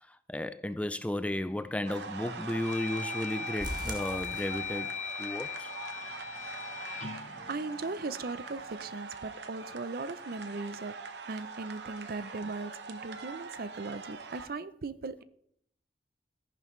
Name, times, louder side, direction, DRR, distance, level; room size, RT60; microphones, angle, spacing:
voice 1, 0.1-4.9 5.2-5.7, left 1 dB, 10° left, 0.3 m, -34 dB
sound 1, 1.3-1.7 2.2-8.4, left 7 dB, 40° left, 0.9 m, -40 dB
sound 2, 1.9-14.5, right 4 dB, 75° right, 0.9 m, -43 dB
sound 3, 3.6-5.1 5.4-5.5 6.0-6.1 6.5-6.6, right 1 dB, 25° right, 1.7 m, -41 dB
voice 2, 7.5-11.0 11.3-15.2, right 3 dB, 55° right, 0.6 m, -38 dB
14.0 x 11.0 x 3.1 m
head